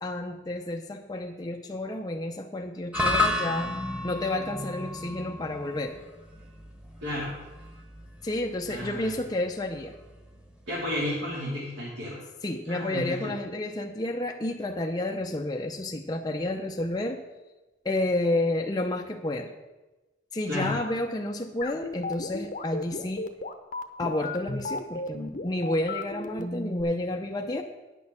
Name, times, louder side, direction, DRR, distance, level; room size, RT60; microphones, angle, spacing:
voice 1, 0.0-3.8 4.0-6.0 8.2-9.9 12.4-17.2 17.8-19.5 20.3-23.3 24.0-27.6, left 1 dB, 20° left, 2 dB, 0.5 m, -30 dB
sound 1, 2.9-11.3, left 2 dB, 5° right, 1.2 m, -33 dB
voice 2, 7.0-7.3 8.7-9.1 10.7-12.2 12.6-13.3 20.5-20.8, left 1 dB, 70° right, -8 dB, 3.1 m, -32 dB
sound 2, 21.6-26.8, left 2 dB, 40° left, 0.8 m, -34 dB
9.7 x 6.5 x 7.0 m, 1.1 s
head